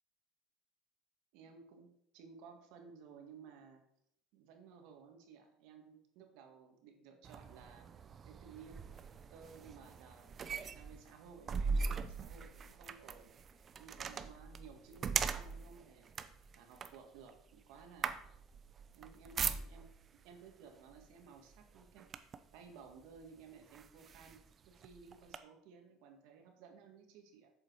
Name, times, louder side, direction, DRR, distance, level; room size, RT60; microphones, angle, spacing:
voice 1, 1.3-3.8 4.3-7.9 8.2-16.1 16.5-18.2 18.9-27.5, right 6 dB, 75° right, 3 dB, 1.9 m, -57 dB
sound 1, 7.2-20.1 20.9-21.1 21.5-22.5 23.2-23.3 23.7-25.4, right 5 dB, 30° right, 0.6 m, -41 dB
8.0 x 7.2 x 4.8 m, 0.73 s
cardioid pair, 130°, 0 cm